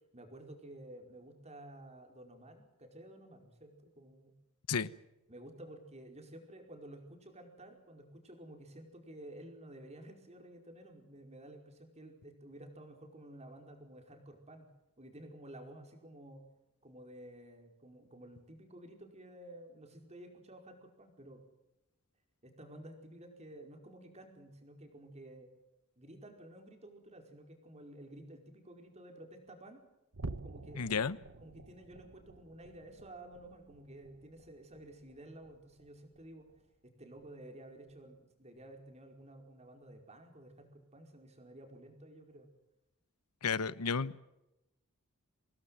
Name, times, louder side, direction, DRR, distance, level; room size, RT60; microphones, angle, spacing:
voice 1, 0.1-4.3 5.3-14.7 15.0-16.4 16.8-21.4 22.4-25.5 26.0-29.8 30.4-36.5 36.8-42.5, right 1 dB, 30° right, 4 dB, 5.0 m, -52 dB
far explosion, 30.1-36.8 37.2-37.4 37.9-38.0 38.6-38.7, right 2 dB, 70° right, 1.2 m, -50 dB
voice 2, 30.7-31.2 43.4-44.2, left 5 dB, 90° left, 18 dB, 1.0 m, -32 dB
26.5 x 19.0 x 7.8 m, 0.94 s
head